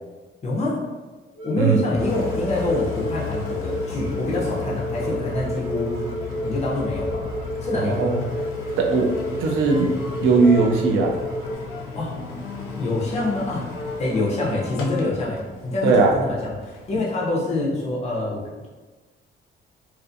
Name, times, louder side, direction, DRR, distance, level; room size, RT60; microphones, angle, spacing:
voice 1, 0.4-0.8 1.4-6.1 6.4-7.3 7.6-8.2 12.0-12.1 12.8-13.7 14.0-18.7, left 2 dB, 30° left, -4 dB, 0.6 m, -26 dB
sound 1, 1.3-11.6, equal, 20° right, 0.8 m, -31 dB
Piano, 1.9-9.6, left 17 dB, 10° left, 1.1 m, -38 dB
Engine, 2.0-17.0, left 3 dB, 75° left, 0.5 m, -34 dB
voice 2, 7.8-8.2 8.8-9.9 10.2-11.2 15.8-16.1, right 4 dB, 80° right, 1 dB, 0.5 m, -19 dB
2.4 x 2.4 x 2.6 m, 1.2 s
cardioid pair, 165°, 21 cm